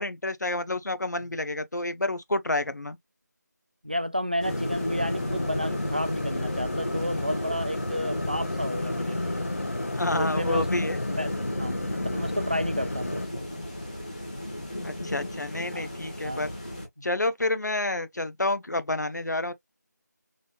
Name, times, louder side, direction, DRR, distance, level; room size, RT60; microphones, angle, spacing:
voice 1, 0.0-3.0 9.9-11.0 14.8-16.5 17.0-19.5, left 2 dB, 70° left, 0.9 m, -29 dB
voice 2, 3.8-9.4 10.1-10.7 11.1-13.5 15.6-15.9 16.2-16.4 17.0-17.1, equal, 30° right, 0.3 m, -32 dB
sound 1, 4.4-13.3, left 2 dB, 50° left, 0.4 m, -32 dB
sound 2, 4.4-16.9, left 1 dB, 25° left, 1.3 m, -35 dB
4.0 x 3.4 x 2.2 m
figure-of-eight pair, 180°, 10 cm